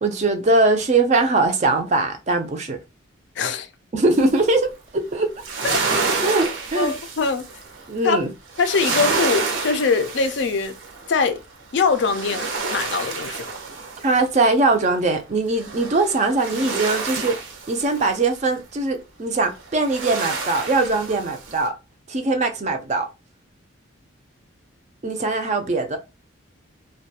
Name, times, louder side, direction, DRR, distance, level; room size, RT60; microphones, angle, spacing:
voice 1, 0.0-2.8 3.9-5.3 6.2-6.9 7.9-8.3 14.0-17.4 17.7-21.7 22.1-23.1 25.0-26.0, right 3 dB, 35° right, 0.4 m, -21 dB
voice 2, 3.4-3.7 5.6-5.8 6.7-7.5 8.0-8.2 8.6-10.8 11.1-11.4 11.7-13.4, left 4 dB, 60° left, 0.3 m, -22 dB
sound 1, 4.1-4.5 5.1-7.9 8.5-11.3 11.7-14.7 15.6-18.3 19.6-21.7, right 4 dB, 75° right, 0.7 m, -28 dB
2.3 x 2.2 x 2.7 m
head